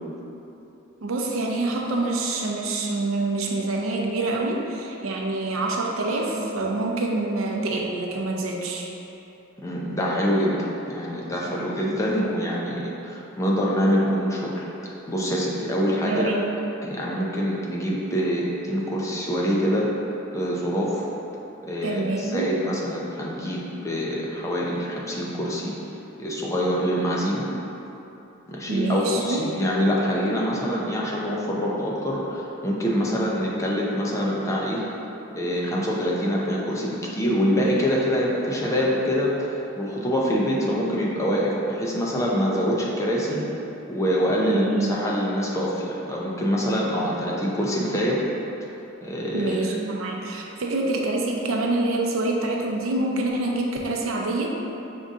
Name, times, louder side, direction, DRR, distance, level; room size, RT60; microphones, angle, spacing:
voice 1, 1.0-8.9 16.1-16.4 21.8-22.5 28.7-29.4 33.1-33.2 44.5-45.0 49.3-54.5, right 2 dB, 80° right, 0 dB, 0.5 m, -26 dB
voice 2, 9.6-16.3 16.8-19.9 20.3-21.1 21.6-25.7 26.2-27.5 28.5-34.8 35.4-43.4 43.9-48.2 49.0-49.6, equal, 15° left, -4 dB, 0.5 m, -25 dB
5.3 x 2.6 x 3.6 m, 3.0 s
head